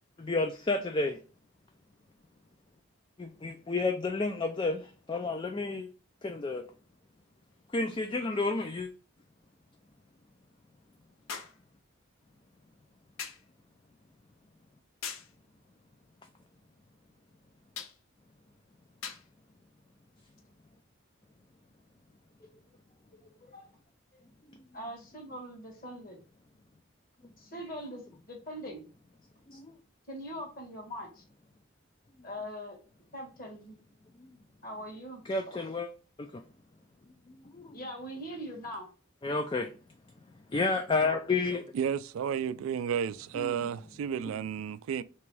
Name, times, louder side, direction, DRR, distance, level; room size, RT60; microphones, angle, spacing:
voice 1, 0.2-1.2 3.2-5.9 6.2-6.6 7.7-8.9 29.5-29.8 35.3-35.9 37.5-37.7 39.2-39.7 40.5-41.6 43.4-43.5, left 3 dB, 25° left, 0.3 m, -30 dB
sound 1, 7.5-7.6 11.3-11.6 13.2-13.5 15.0-15.4 17.7-18.0 19.0-19.3 20.4-20.5, left 7 dB, 80° left, 0.7 m, -41 dB
voice 2, 23.4-23.7 24.1-24.2 24.7-26.2 27.4-28.8 30.1-31.2 32.2-32.8 33.1-33.8 34.6-35.7 37.7-38.9, equal, 45° left, 1.4 m, -42 dB
voice 3, 41.7-45.0, right 8 dB, 80° right, 0.3 m, -32 dB
3.4 x 3.0 x 4.7 m
head